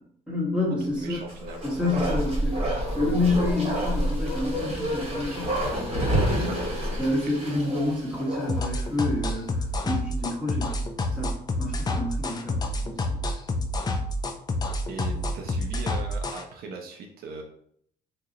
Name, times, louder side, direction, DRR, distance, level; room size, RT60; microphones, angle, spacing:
voice 1, 0.3-1.2 1.6-6.6 7.0-13.2, left 2 dB, 5° right, -5 dB, 1.3 m, -29 dB
voice 2, 1.0-1.6 6.5-7.0 14.9-17.4, right 4 dB, 65° right, 2 dB, 0.5 m, -39 dB
Bark, 1.2-8.8 9.1-9.2, right 1 dB, 35° right, 1.2 m, -28 dB
sound 1, 8.5-16.4, left 1 dB, 25° left, 0.4 m, -28 dB
2.8 x 2.1 x 3.8 m, 0.66 s
cardioid pair, 110°, 17 cm